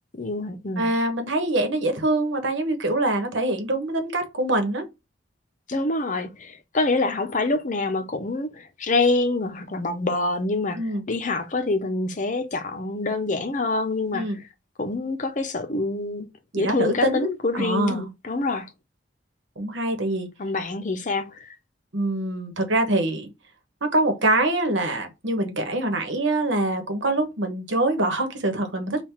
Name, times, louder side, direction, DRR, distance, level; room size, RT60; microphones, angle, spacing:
voice 1, 0.2-0.9 5.7-10.8 11.1-14.3 14.8-16.3 16.6-18.7 20.4-21.3, left 3 dB, 40° left, 0.7 m, -26 dB
voice 2, 0.8-4.9 10.7-11.0 14.1-14.4 16.5-18.0 19.6-20.3 21.9-23.3 23.8-29.1, right 2 dB, 75° right, 1.1 m, -24 dB
3.8 x 2.4 x 4.4 m
head